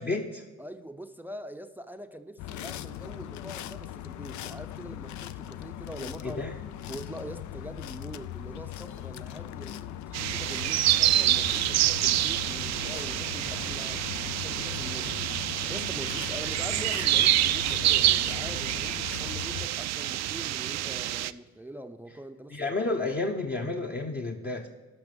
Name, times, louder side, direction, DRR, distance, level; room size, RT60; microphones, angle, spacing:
voice 1, 0.0-0.5 6.2-6.5 22.5-24.7, left 3 dB, 30° left, 0.9 m, -31 dB
voice 2, 0.6-6.4 6.9-22.6 23.2-23.3, right 1 dB, 5° right, 0.5 m, -43 dB
sound 1, 2.4-19.7, left 12 dB, 75° left, 0.5 m, -39 dB
sound 2, 10.1-21.3, right 13 dB, 60° right, 0.4 m, -27 dB
12.0 x 5.9 x 5.2 m
cardioid pair, 90°, 30 cm